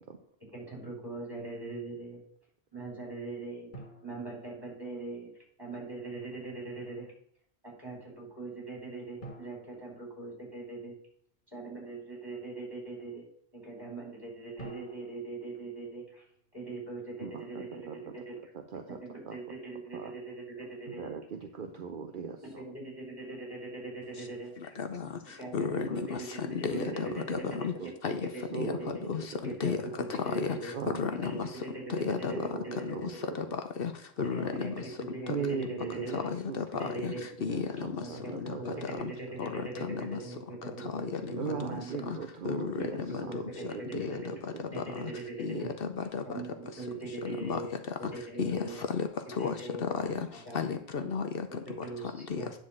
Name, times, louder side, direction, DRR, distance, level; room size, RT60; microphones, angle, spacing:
voice 1, 0.5-2.2 2.7-3.7 4.0-5.3 5.6-7.1 7.6-10.9 11.5-13.2 13.5-16.2 16.5-18.3 18.9-21.1 22.4-24.5 25.4-27.8 28.2-29.0 29.4-30.7 31.1-33.5 34.3-34.7 35.0-36.2 36.8-37.3 38.0-42.1 42.8-44.3 44.7-45.7 46.2-47.7 48.0-48.8 49.4-50.7 51.5-52.5, right 3 dB, 20° right, -3 dB, 4.7 m, -41 dB
sound 1, 3.7-5.3 9.2-11.1 14.6-16.8, right 2 dB, 50° left, 1.8 m, -51 dB
voice 2, 17.2-18.0 18.5-19.0 19.3-19.4 19.9-20.1 20.9-22.6 25.4-25.5 26.7-27.9 28.5-29.6 30.7-31.1 32.0-33.4 34.4-34.5 35.3-36.6 37.1-39.0 39.6-39.7 41.4-44.8 45.1-45.2 45.5-45.8, right 6 dB, 55° right, 5 dB, 0.9 m, -40 dB
voice 3, 24.8-25.1 25.5-27.7 28.0-28.2 28.5-28.7 29.1-29.2 29.6-29.8 30.1-30.7 31.0-31.5 31.9-32.3 32.8-33.1 33.3-33.4 33.8-33.9 34.2-34.8 36.1-37.1 37.4-38.0 38.3-38.5 39.0-39.1 39.4-40.2 40.9-41.2 42.1-42.2 42.4-42.7 43.1-43.4 43.9-44.2 44.8-44.9 45.4-46.2 47.2-47.6 48.4-49.1 49.4-49.5 49.8-50.3 50.5-51.5 52.3-52.4, left 6 dB, 65° left, 7 dB, 0.9 m, -33 dB
9.8 x 3.9 x 7.4 m, 0.65 s
omnidirectional pair, 1.1 m